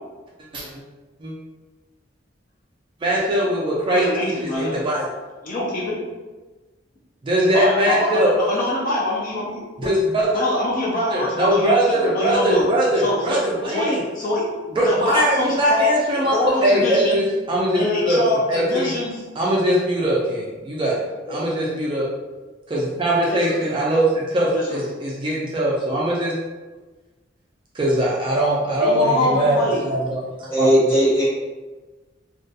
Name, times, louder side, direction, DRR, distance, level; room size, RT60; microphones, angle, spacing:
voice 1, 3.0-5.0 7.2-8.3 9.8-10.3 11.1-14.0 14.8-16.4 16.6-18.2 18.5-18.9 19.4-21.0 21.3-22.1 22.7-26.3 27.7-29.6 29.9-30.7, right 1 dB, 25° right, -4 dB, 0.3 m, -21 dB
voice 2, 3.9-4.7 5.4-6.0 7.5-10.0 10.3-12.7 13.0-13.3 13.7-17.2 17.7-19.2 21.3-21.4 23.3-23.6 24.5-24.8 28.8-29.8, left 1 dB, 45° left, -4 dB, 0.4 m, -24 dB
voice 3, 30.5-31.2, equal, 15° left, -10 dB, 1.1 m, -17 dB
2.3 x 2.2 x 2.6 m, 1.2 s
head